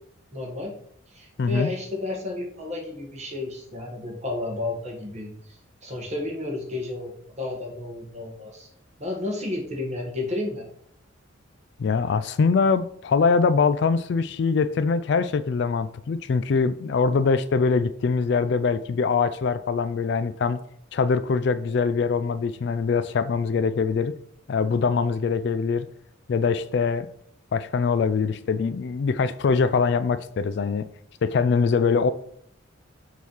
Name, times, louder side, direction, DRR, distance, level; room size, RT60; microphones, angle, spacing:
voice 1, 0.3-0.7 1.1-5.6 5.8-8.7 9.0-10.7, left 2 dB, 35° right, 1.4 m, -32 dB
voice 2, 1.4-1.7 11.8-20.6 20.9-24.1 24.5-25.9 26.3-27.1 27.5-30.9 31.2-32.1, left 5 dB, 55° left, 0.3 m, -23 dB
6.3 x 3.0 x 5.3 m
head